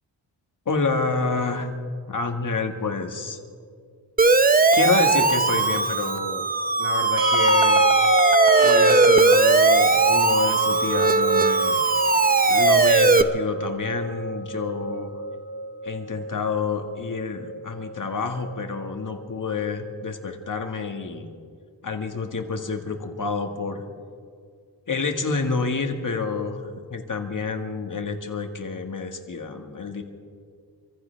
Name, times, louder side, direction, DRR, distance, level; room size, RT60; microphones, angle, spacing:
voice 1, 0.7-1.7 2.1-3.4 4.7-6.5 6.8-7.9 8.6-11.8 12.5-15.2 15.8-21.3 21.8-23.8 24.9-30.0, left 4 dB, 40° left, 4 dB, 1.9 m, -28 dB
Siren, 4.2-13.2, right 3 dB, 20° right, 0.6 m, -19 dB
sound 1, 7.2-20.1, right 1 dB, 45° right, 3.5 m, -29 dB
26.5 x 15.0 x 3.4 m, 2.1 s
cardioid pair, 80°, 46 cm